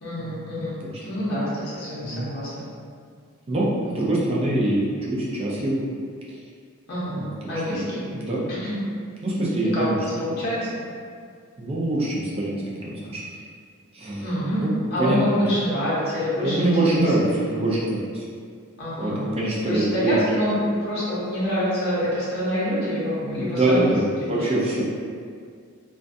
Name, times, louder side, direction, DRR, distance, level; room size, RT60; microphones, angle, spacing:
voice 1, 0.0-2.6 3.8-4.1 6.9-8.0 8.5-8.8 9.6-10.8 14.2-17.5 18.8-19.3 19.7-24.6, equal, 45° left, -9 dB, 0.7 m, -27 dB
voice 2, 3.5-5.8 7.1-7.3 7.7-7.8 8.1-8.4 9.2-10.0 11.6-13.2 13.9-14.2 14.6-15.2 16.4-18.3 19.0-20.2 23.2-24.8, right 1 dB, 25° right, -6 dB, 0.4 m, -24 dB
2.4 x 2.2 x 2.5 m, 2.1 s
head